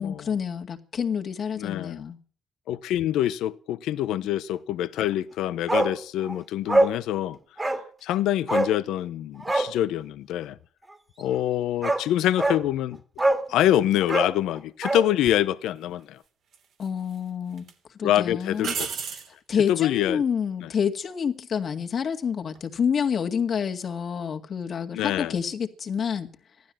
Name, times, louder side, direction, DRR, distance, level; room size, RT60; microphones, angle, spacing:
voice 1, 0.0-2.2 16.8-17.7 18.0-18.7 19.1-19.2 19.5-26.3, left 7 dB, 50° left, 2.0 m, -28 dB
voice 2, 1.6-2.0 2.7-7.4 8.0-10.6 11.2-13.0 13.5-16.2 18.0-18.7 19.7-20.2 24.9-25.4, left 12 dB, 90° left, 0.7 m, -25 dB
Bark, 5.7-6.0 6.2-6.3 6.7-7.0 7.6-7.8 8.5-8.7 9.4-9.7 11.3-11.4 11.8-12.0 12.4-12.6 13.2-13.5 14.0-15.1 15.3-15.4, right 2 dB, 20° right, 2.0 m, -23 dB
sound 1, 15.2-15.4 16.5-17.2 17.6-17.7 18.6-19.3 22.4-22.8, right 6 dB, 70° right, 3.0 m, -33 dB
15.5 x 12.5 x 7.4 m
cardioid pair, 90°, 0 cm